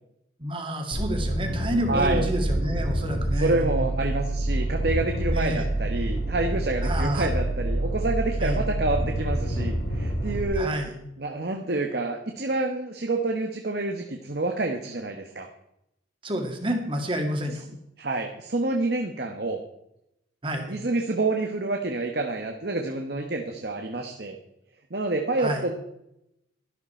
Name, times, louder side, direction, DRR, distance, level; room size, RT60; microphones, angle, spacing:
voice 1, 0.4-3.8 5.3-5.7 6.8-7.3 8.4-8.6 10.6-11.0 16.2-17.6 20.4-20.8 25.4-25.6, equal, 30° right, 3 dB, 2.2 m, -29 dB
sound 1, 0.9-10.4, right 1 dB, 85° left, 3.6 m, -27 dB
voice 2, 1.9-2.3 3.3-10.7 11.2-15.5 18.0-19.6 20.7-24.4 24.9-25.8, right 2 dB, 55° right, 4 dB, 1.2 m, -28 dB
12.5 x 12.0 x 4.4 m, 0.82 s
head